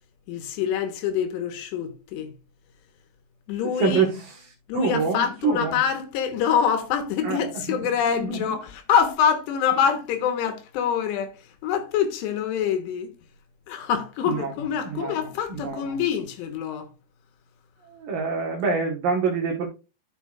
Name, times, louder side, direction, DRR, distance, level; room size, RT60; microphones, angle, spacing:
voice 1, 0.3-2.3 3.5-4.1 4.7-11.3 11.6-13.1 13.7-16.9, left 8 dB, 80° left, 3.1 m, -25 dB
voice 2, 3.8-4.5 4.7-5.8 7.2-7.4 7.7-7.8 8.2-8.5 14.3-14.5 14.8-15.2 15.5-15.8 17.9-19.7, right 4 dB, 65° right, 2.6 m, -26 dB
12.0 x 6.7 x 2.3 m
omnidirectional pair, 5.0 m